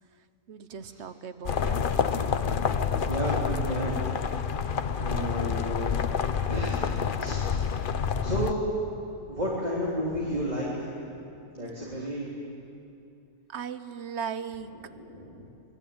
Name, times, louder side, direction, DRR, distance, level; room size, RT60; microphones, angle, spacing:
voice 1, 0.5-1.8 5.2-6.1 11.6-11.9 13.5-14.7, right 7 dB, 55° right, 12 dB, 1.1 m, -39 dB
sound 1, 1.4-8.5, left 6 dB, 45° left, 0.8 m, -28 dB
voice 2, 2.1-4.2 5.0-6.0 6.5-6.9 7.2-7.4 8.2-8.6 9.3-11.3 11.5-12.3 14.9-15.5, equal, 30° right, -5 dB, 3.6 m, -32 dB
26.0 x 20.0 x 8.8 m, 2.6 s
omnidirectional pair, 1.5 m